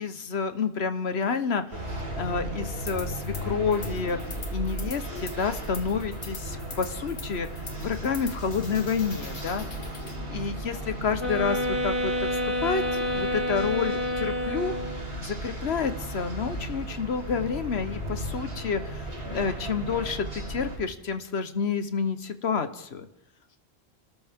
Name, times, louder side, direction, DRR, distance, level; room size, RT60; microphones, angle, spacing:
voice 1, 0.0-4.2 4.5-9.6 10.3-14.8 15.2-23.1, left 5 dB, 70° left, 10 dB, 1.3 m, -29 dB
sound 1, 1.7-20.8, right 1 dB, 80° right, 4.8 m, -36 dB
sound 2, 2.9-3.4 3.7-10.2, left 4 dB, 85° left, 2.0 m, -43 dB
sound 3, 11.2-15.1, left 1 dB, 20° right, 3.3 m, -28 dB
30.0 x 13.0 x 3.6 m, 0.91 s
omnidirectional pair, 1.1 m